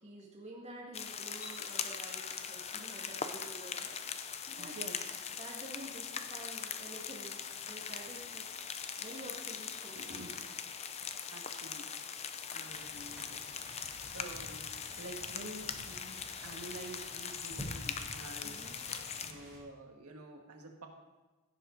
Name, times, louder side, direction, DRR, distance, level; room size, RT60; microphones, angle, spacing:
voice 1, 0.0-4.0 4.5-4.8 5.4-8.6 9.0-10.2 12.6-12.8 18.4-18.7, right 1 dB, 30° right, -4 dB, 1.9 m, -49 dB
sound 1, 0.9-19.3, left 7 dB, 30° left, 0.5 m, -41 dB
sound 2, 1.3-1.6 3.3-3.6 5.4-5.7 9.8-10.9 14.0-14.1 16.1-18.2 18.8-19.0, left 2 dB, 65° left, 3.2 m, -58 dB
voice 2, 4.6-5.2 9.9-10.3 11.3-12.2 12.5-13.4 14.1-14.7 15.0-20.9, right 2 dB, 85° right, 2 dB, 1.7 m, -49 dB
sound 3, 12.7-19.6, equal, ahead, 3.8 m, -50 dB
16.5 x 7.3 x 3.9 m, 1.2 s
head